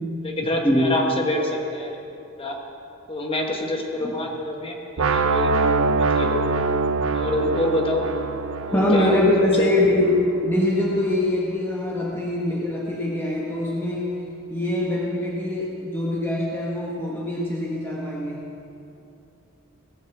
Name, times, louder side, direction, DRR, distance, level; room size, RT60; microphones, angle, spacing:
voice 1, 0.2-2.0 2.4-2.6 3.1-6.5 7.1-8.1 8.7-9.2 9.6-9.7, left 1 dB, 25° left, 1 dB, 1.5 m, -26 dB
sound 1, 5.0-10.9, right 4 dB, 85° right, 0.7 m, -24 dB
voice 2, 8.7-14.1 14.5-18.5, left 1 dB, 10° left, -3 dB, 1.2 m, -23 dB
17.5 x 6.5 x 7.2 m, 2.7 s
head